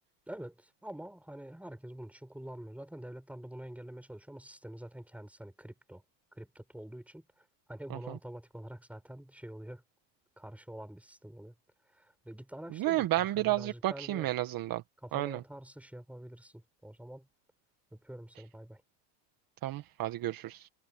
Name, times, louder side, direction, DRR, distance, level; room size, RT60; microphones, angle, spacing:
voice 1, 0.3-6.0 6.3-7.2 7.7-9.8 10.4-11.5 11.9-14.3 15.0-17.3 17.9-18.8, right 1 dB, 5° right, 6.8 m, -46 dB
voice 2, 12.8-14.8 15.1-15.4 19.6-20.7, right 15 dB, 45° right, 1.7 m, -31 dB
supercardioid pair, 125°, 50 cm